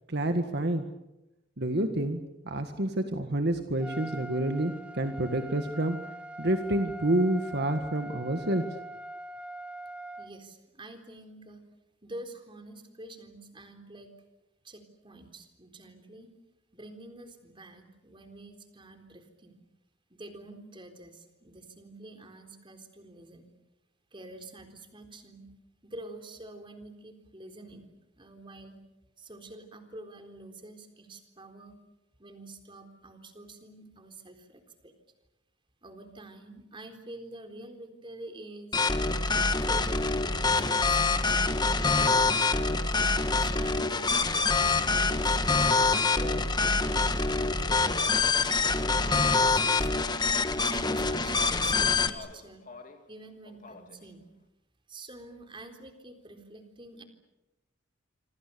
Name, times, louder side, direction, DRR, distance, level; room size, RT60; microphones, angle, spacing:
voice 1, 0.1-0.9 1.6-6.0 6.4-8.6, right 1 dB, 55° right, 7 dB, 1.8 m, -28 dB
Trumpet, 3.8-10.3, right 1 dB, 5° right, 1.0 m, -43 dB
voice 2, 10.2-11.6 12.0-14.1 14.6-16.3 16.7-19.6 20.1-23.5 24.1-25.5 25.8-28.8 29.2-31.8 32.2-34.9 35.8-38.8 39.3-42.4 42.9-45.4 45.9-47.1 47.4-48.0 48.3-49.3 49.5-49.9 50.7-52.7 53.1-54.3 54.9-57.0, right 2 dB, 25° right, 7 dB, 3.8 m, -47 dB
sound 1, 38.7-52.1, left 4 dB, 20° left, 1.4 m, -25 dB
Speech, 47.3-49.5 50.3-51.5 52.0-53.1 53.4-54.1, left 2 dB, 40° left, 2.6 m, -48 dB
26.5 x 26.5 x 7.0 m, 0.94 s
head